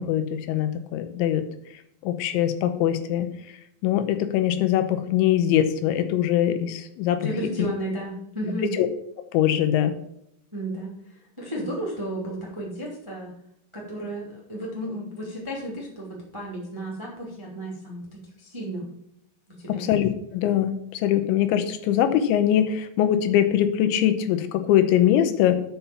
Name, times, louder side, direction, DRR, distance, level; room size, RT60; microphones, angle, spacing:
voice 1, 0.0-1.4 2.0-3.3 3.8-7.3 8.7-8.9 9.3-9.9 19.7-25.6, left 11 dB, 80° left, 9 dB, 3.1 m, -22 dB
voice 2, 7.2-8.7 10.5-13.3 13.7-18.8 19.5-19.9, right 1 dB, 20° right, -3 dB, 0.8 m, -33 dB
7.2 x 5.8 x 7.0 m, 0.77 s
omnidirectional pair, 5.4 m